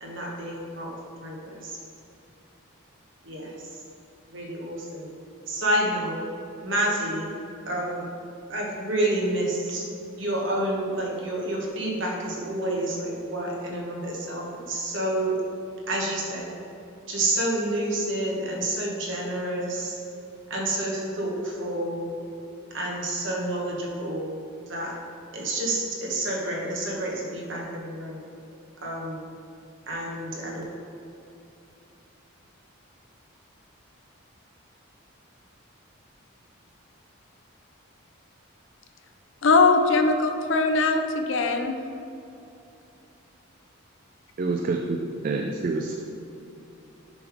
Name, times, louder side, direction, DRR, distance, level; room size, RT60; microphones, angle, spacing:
voice 1, 0.0-1.8 3.2-3.5 4.3-5.1 5.5-6.2 6.6-7.3 7.7-8.1 8.5-9.9 10.2-15.4 15.9-16.5 17.1-20.0 20.5-22.1 22.7-24.3 24.7-24.9 25.3-28.2 28.8-29.2 29.9-30.6, right 1 dB, 60° right, -2 dB, 1.2 m, -29 dB
voice 2, 39.4-41.8, left 3 dB, 60° left, 6 dB, 0.5 m, -21 dB
voice 3, 44.4-45.0 45.2-45.9, right 3 dB, 40° right, 3 dB, 0.3 m, -27 dB
7.0 x 3.3 x 4.9 m, 2.7 s
head